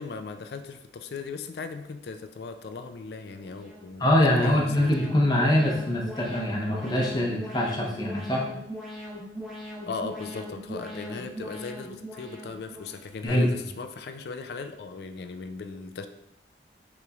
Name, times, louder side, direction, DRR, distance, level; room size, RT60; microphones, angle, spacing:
voice 1, 0.0-5.1 9.9-16.1, left 4 dB, 65° left, 7 dB, 0.4 m, -38 dB
Alarm, 3.4-13.3, equal, ahead, 1.0 m, -40 dB
voice 2, 4.0-8.4 13.2-13.5, left 1 dB, 25° left, -2 dB, 0.7 m, -23 dB
6.7 x 3.1 x 2.4 m, 0.84 s
head